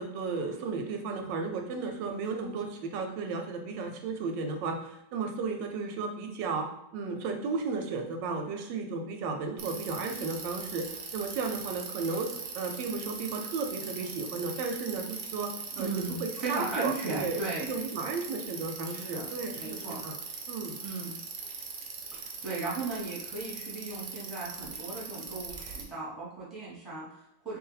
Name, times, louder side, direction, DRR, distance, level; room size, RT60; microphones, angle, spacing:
voice 1, 0.0-6.7 6.9-15.5 15.8-15.9 16.2-20.2 20.5-20.8, right 4 dB, 85° right, 4 dB, 1.3 m, -34 dB
Bicycle, 9.6-25.8, right 5 dB, 65° right, 0.8 m, -41 dB
voice 2, 15.7-17.7 18.8-20.0 20.8-21.1 22.1-27.6, right 3 dB, ahead, -7 dB, 1.0 m, -37 dB
3.1 x 2.7 x 3.9 m, 0.83 s
omnidirectional pair, 1.9 m